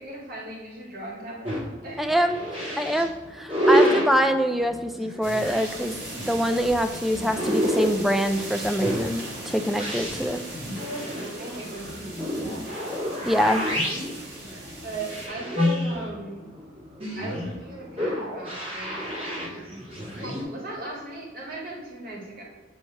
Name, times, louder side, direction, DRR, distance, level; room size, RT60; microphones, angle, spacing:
voice 1, 0.0-1.5 1.8-2.3 10.7-12.7 14.8-16.4 17.1-19.0 19.5-19.8 20.1-22.4, right 2 dB, 50° right, -2 dB, 1.6 m, -38 dB
sound 1, 1.4-20.4, equal, 30° right, 1.5 m, -29 dB
voice 2, 2.0-2.4 2.8-6.0 6.3-10.4 13.2-13.6, equal, ahead, 7 dB, 0.3 m, -24 dB
sound 2, 5.2-15.3, right 2 dB, 70° right, 1.4 m, -39 dB
7.5 x 3.2 x 4.3 m, 1.3 s
head